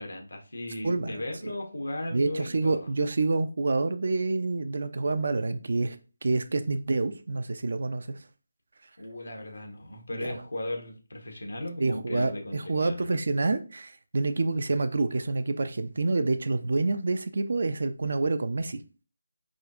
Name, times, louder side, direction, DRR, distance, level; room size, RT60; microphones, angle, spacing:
voice 1, 0.0-2.9 9.0-13.1, left 1 dB, 80° left, 2 dB, 1.1 m, -36 dB
voice 2, 2.1-6.0 6.2-8.2 10.1-10.4 11.8-18.8, right 3 dB, 60° right, 10 dB, 0.4 m, -27 dB
4.9 x 2.3 x 2.5 m, 0.34 s
figure-of-eight pair, 160°, 0 cm